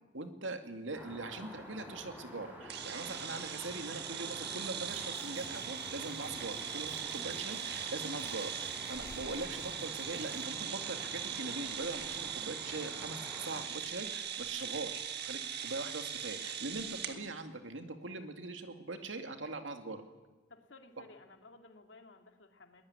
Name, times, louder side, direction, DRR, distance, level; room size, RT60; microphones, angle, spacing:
voice 1, 0.1-20.0, right 2 dB, 85° right, 6 dB, 2.3 m, -42 dB
sound 1, 0.9-13.6, equal, 10° right, 7.4 m, -49 dB
sound 2, 2.7-17.2, right 8 dB, 60° right, 1.8 m, -40 dB
Drum kit, 4.9-10.5, left 1 dB, 50° left, 4.2 m, -57 dB
voice 2, 20.5-22.9, left 3 dB, 80° left, 4 dB, 2.6 m, -57 dB
21.0 x 19.5 x 9.7 m, 1.2 s
head